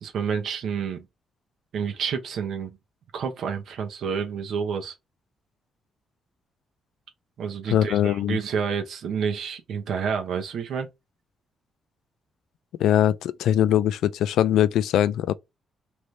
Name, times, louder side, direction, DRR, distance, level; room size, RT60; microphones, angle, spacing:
voice 1, 0.0-1.0 1.7-2.8 3.1-4.9 7.4-10.9, right 6 dB, 55° right, 0.9 m, -29 dB
voice 2, 7.7-8.4 12.8-15.3, left 11 dB, 90° left, 0.4 m, -21 dB
3.3 x 3.1 x 3.9 m
cardioid pair, 180°, 0 cm